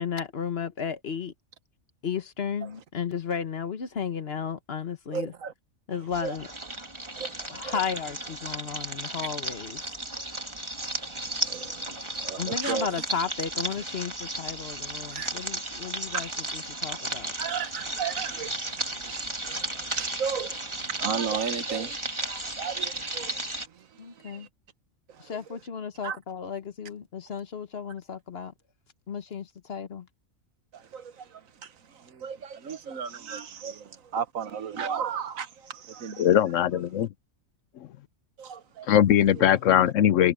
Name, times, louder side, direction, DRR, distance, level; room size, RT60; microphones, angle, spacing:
voice 1, 0.0-1.3 2.0-5.3 5.9-6.5 7.5-9.8 12.4-17.3 24.0-24.5 25.2-28.5 29.1-30.1, left 6 dB, 50° left, 1.3 m, -34 dB
voice 2, 5.1-5.5 5.9-6.4 7.1-7.8 10.9-12.9 15.1-15.3 16.1-16.3 17.4-24.5 25.1-25.4 26.0-26.2 30.7-36.3 38.4-38.9 39.2-39.7, right 7 dB, 80° right, 1.5 m, -35 dB
sound 1, 6.1-23.7, right 1 dB, 20° right, 2.4 m, -34 dB
voice 3, 36.2-37.1 38.9-40.3, left 10 dB, 70° left, 1.0 m, -20 dB
omnidirectional pair, 1.4 m